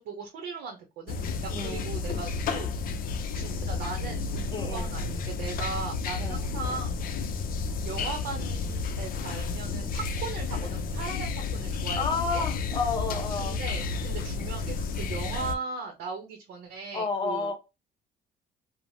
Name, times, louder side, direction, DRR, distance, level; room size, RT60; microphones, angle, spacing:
voice 1, 0.0-3.1 3.3-7.0 7.8-12.4 13.4-17.5, right 5 dB, 75° right, 0.7 m, -38 dB
sound 1, 1.1-15.5, left 4 dB, 55° left, 0.5 m, -31 dB
voice 2, 1.5-1.9 4.5-4.9 6.2-6.5 11.9-13.6 16.9-17.6, left 4 dB, 25° left, 0.8 m, -31 dB
3.1 x 2.1 x 2.6 m
cardioid pair, 110°, 17 cm